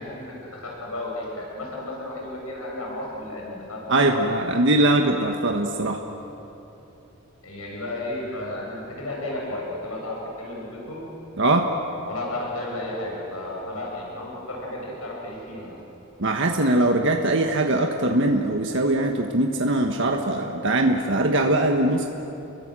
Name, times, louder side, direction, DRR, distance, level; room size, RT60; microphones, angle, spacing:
voice 1, 0.0-4.2 7.4-11.1 12.1-15.8, left 1 dB, 80° left, -2 dB, 7.1 m, -33 dB
voice 2, 3.9-6.0 11.4-11.7 16.2-22.1, right 1 dB, 60° right, 3 dB, 1.4 m, -21 dB
30.0 x 22.5 x 7.6 m, 3.0 s
head